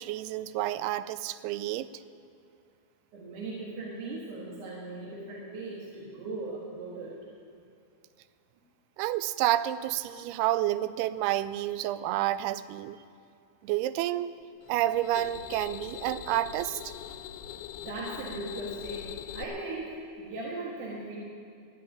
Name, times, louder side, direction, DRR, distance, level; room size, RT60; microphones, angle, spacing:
voice 1, 0.0-1.9 9.0-13.0 13.6-14.3 14.7-16.9, right 14 dB, 90° right, 15 dB, 2.6 m, -29 dB
voice 2, 3.1-7.2 17.8-21.2, right 2 dB, 60° right, -4 dB, 2.8 m, -38 dB
sound 1, 14.6-19.4, left 10 dB, 85° left, 2.8 m, -42 dB
13.0 x 8.7 x 9.5 m, 2.5 s
omnidirectional pair, 4.5 m